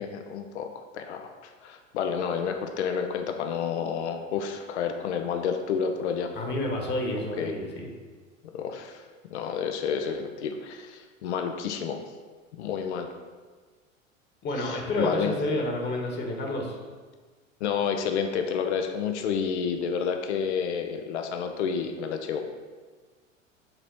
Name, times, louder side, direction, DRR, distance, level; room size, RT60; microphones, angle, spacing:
voice 1, 0.0-6.3 7.4-7.5 8.5-9.0 9.3-12.0 12.6-13.1 14.6-15.3 17.6-22.4, left 6 dB, 60° left, 6 dB, 0.8 m, -30 dB
voice 2, 6.3-7.9 14.4-16.8, left 1 dB, 25° left, 1 dB, 1.3 m, -29 dB
8.0 x 4.2 x 4.5 m, 1.4 s
figure-of-eight pair, 85°, 39 cm